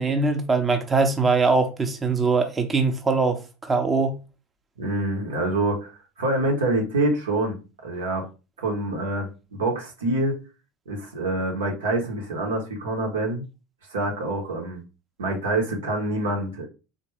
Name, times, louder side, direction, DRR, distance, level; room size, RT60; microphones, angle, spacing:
voice 1, 0.0-4.1, right 4 dB, 20° right, 0.6 m, -22 dB
voice 2, 4.8-7.5 7.8-8.3 8.6-10.3 10.9-13.4 13.9-14.8 15.2-16.7, right 2 dB, 85° right, 0.8 m, -26 dB
3.4 x 2.2 x 3.1 m
hypercardioid pair, 75°, 0 cm